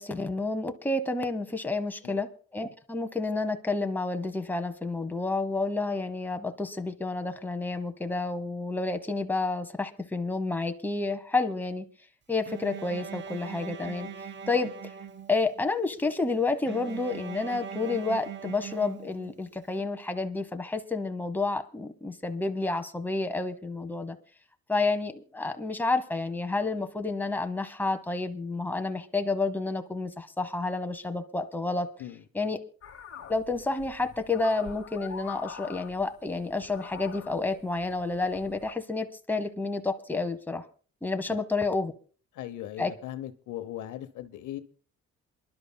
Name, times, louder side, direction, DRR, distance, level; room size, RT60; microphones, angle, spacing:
voice 1, 0.0-11.9 12.3-14.1 14.5-14.9 15.3-24.2 24.7-31.9 32.3-32.6 33.3-40.6 41.0-41.9 42.8-42.9, left 3 dB, 5° left, 0.9 m, -30 dB
Bowed string instrument, 12.5-15.7 16.7-19.6, right 8 dB, 40° right, 0.7 m, -41 dB
sound 1, 32.8-38.7, left 7 dB, 55° left, 1.2 m, -45 dB
voice 2, 42.3-44.6, left 12 dB, 80° left, 0.9 m, -39 dB
27.5 x 11.0 x 2.2 m
cardioid pair, 90°, 30 cm